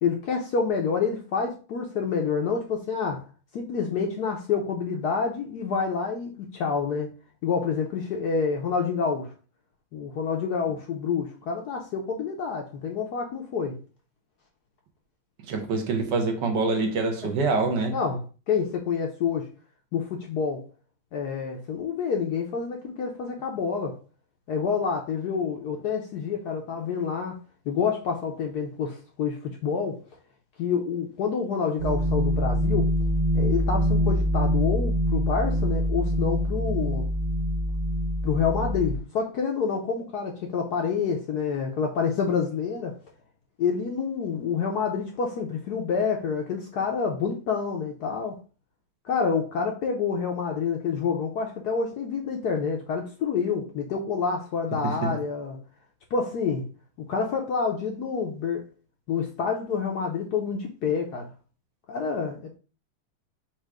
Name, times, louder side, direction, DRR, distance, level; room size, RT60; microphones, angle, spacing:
voice 1, 0.0-3.3 3.5-7.1 7.4-9.3 9.9-13.8 17.9-19.5 19.9-20.6 21.1-24.0 24.5-27.4 27.7-30.0 30.6-32.9 33.3-37.1 38.2-43.0 43.6-48.4 49.0-55.6 56.1-56.6 57.1-58.6 59.1-61.3 61.9-62.6, left 5 dB, 70° left, 1.0 m, -28 dB
voice 2, 15.5-18.0 54.7-55.2, right 3 dB, 65° right, 1.2 m, -26 dB
sound 1, 31.8-39.0, equal, 40° right, 0.7 m, -24 dB
4.4 x 2.5 x 4.6 m
omnidirectional pair, 2.3 m